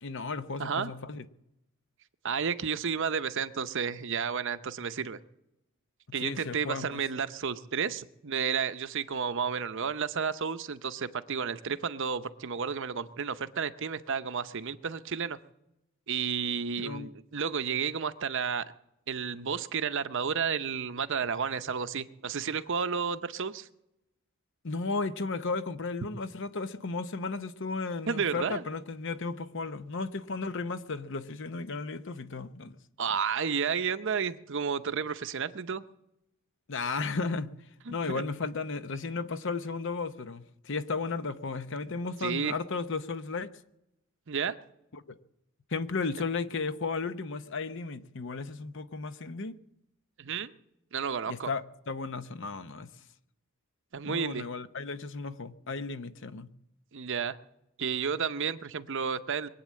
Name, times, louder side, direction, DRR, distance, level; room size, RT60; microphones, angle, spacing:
voice 1, 0.0-1.3 6.2-7.0 16.8-17.1 24.6-32.8 36.7-37.5 37.9-43.5 44.9-45.0 45.7-49.5 51.3-51.6 51.9-52.9 54.0-56.5, left 4 dB, 55° left, 0.8 m, -34 dB
voice 2, 0.6-0.9 2.2-5.2 6.1-15.4 16.1-18.6 19.1-23.7 28.1-28.6 33.0-35.8 37.9-38.2 42.2-42.5 44.3-44.5 50.2-50.5 50.9-51.5 53.9-54.4 56.9-57.4 57.8-59.5, right 6 dB, 55° right, 0.7 m, -32 dB
22.5 x 8.6 x 7.4 m
head